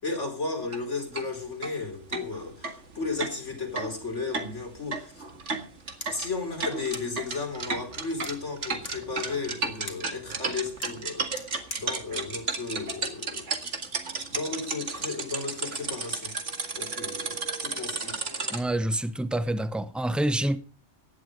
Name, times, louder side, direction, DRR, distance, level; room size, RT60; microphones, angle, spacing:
voice 1, 0.0-5.2 6.1-13.8 14.3-16.3 16.7-18.2, left 4 dB, 75° left, 4.6 m, -34 dB
sound 1, 0.6-0.8 1.1-1.3 1.6-1.7 2.1-18.6, right 4 dB, 75° right, 2.3 m, -33 dB
sound 2, 5.9-13.6, left 3 dB, 55° left, 2.5 m, -48 dB
voice 2, 18.5-20.6, right 1 dB, ahead, 0.8 m, -27 dB
17.0 x 11.0 x 5.1 m
omnidirectional pair, 1.3 m